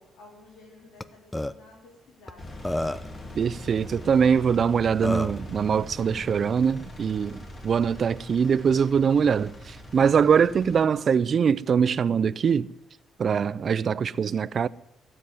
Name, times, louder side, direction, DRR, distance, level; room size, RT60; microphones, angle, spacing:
voice 1, 0.0-2.6, left 2 dB, 85° left, 4.2 m, -52 dB
Burping eructation, 1.0-1.1 1.3-1.5 2.3-2.4 2.6-3.2 4.5-4.6 5.0-5.4, left 1 dB, 10° left, 0.6 m, -29 dB
Engine, 2.4-10.9, left 1 dB, 35° left, 3.3 m, -41 dB
voice 2, 3.4-12.7 13.2-14.7, right 7 dB, 50° right, 0.5 m, -23 dB
17.0 x 7.7 x 9.3 m
cardioid pair, 95°, 0 cm